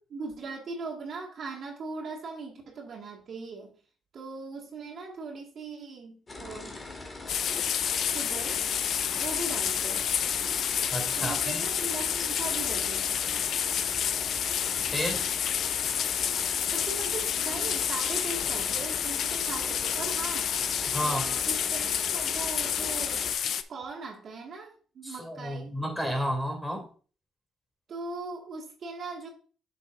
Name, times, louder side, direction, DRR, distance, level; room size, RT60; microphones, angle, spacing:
voice 1, 0.1-3.7 4.1-6.8 8.0-8.6 9.1-10.1 11.2-13.2 16.7-20.5 20.9-23.2 23.7-25.7 27.9-29.3, right 3 dB, 55° right, 1 dB, 1.8 m, -39 dB
sound 1, 6.3-23.3, left 2 dB, 25° left, 2.1 m, -41 dB
sound 2, 7.3-23.6, left 9 dB, 65° left, 0.5 m, -29 dB
voice 2, 10.9-11.6 14.9-15.3 20.8-21.2 25.0-26.8, equal, 5° left, 1 dB, 2.9 m, -32 dB
7.9 x 6.7 x 2.5 m, 0.39 s
cardioid pair, 90°, 0 cm